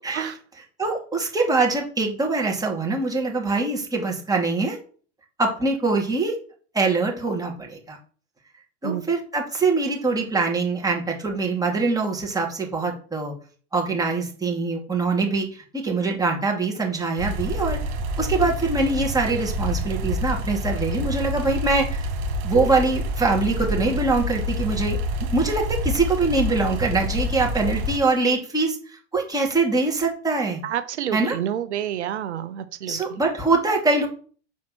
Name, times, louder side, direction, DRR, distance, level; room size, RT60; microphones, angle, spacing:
voice 1, 0.8-4.8 5.4-6.4 6.7-8.0 8.8-13.3 13.7-17.8 18.2-22.1 22.4-25.0 25.3-28.8 29.1-30.6 31.1-31.4 32.9-34.1, right 3 dB, 10° right, -1 dB, 2.7 m, -23 dB
sound 1, 17.2-28.0, equal, 65° right, 2.1 m, -27 dB
voice 2, 30.6-33.2, right 10 dB, 85° right, 11 dB, 0.7 m, -29 dB
6.3 x 4.2 x 6.1 m, 0.42 s
hypercardioid pair, 95°, 33 cm